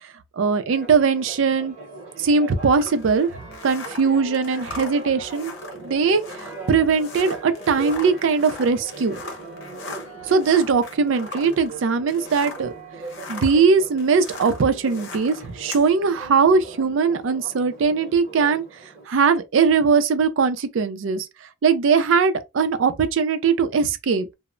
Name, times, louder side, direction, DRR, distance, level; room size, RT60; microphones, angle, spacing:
voice 1, 0.4-3.3 3.6-9.2 10.3-12.7 13.3-18.6 19.1-21.3 21.6-24.3, right 5 dB, 70° right, 0.4 m, -20 dB
Church bell, 0.7-19.1, right 3 dB, 35° right, 0.8 m, -39 dB
sound 1, 2.7-12.7 13.0-15.9, left 4 dB, 65° left, 0.7 m, -40 dB
2.1 x 2.0 x 3.6 m
head